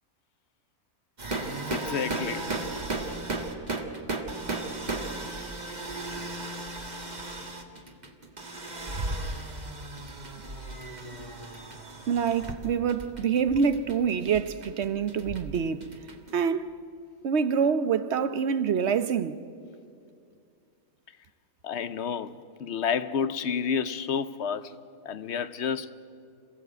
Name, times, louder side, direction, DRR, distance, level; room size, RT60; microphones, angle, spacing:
sound 1, 1.2-16.3, right 2 dB, 30° right, 1.7 m, -35 dB
voice 1, 1.7-2.5 21.6-24.7 25.0-25.9, left 7 dB, 60° left, 0.8 m, -30 dB
voice 2, 12.1-15.9 16.3-16.7 17.2-19.4, right 6 dB, 55° right, 1.0 m, -26 dB
27.0 x 16.0 x 8.0 m
omnidirectional pair, 1.5 m